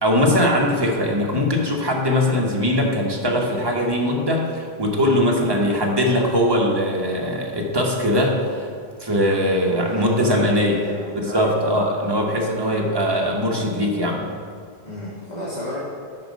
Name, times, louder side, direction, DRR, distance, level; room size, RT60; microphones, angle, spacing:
voice 1, 0.0-8.7 9.0-10.8 11.2-14.3, equal, 25° right, -1 dB, 1.1 m, -21 dB
voice 2, 9.7-11.8 14.8-15.8, left 1 dB, 45° left, -8 dB, 1.5 m, -31 dB
8.5 x 5.3 x 5.3 m, 2.1 s
omnidirectional pair, 1.1 m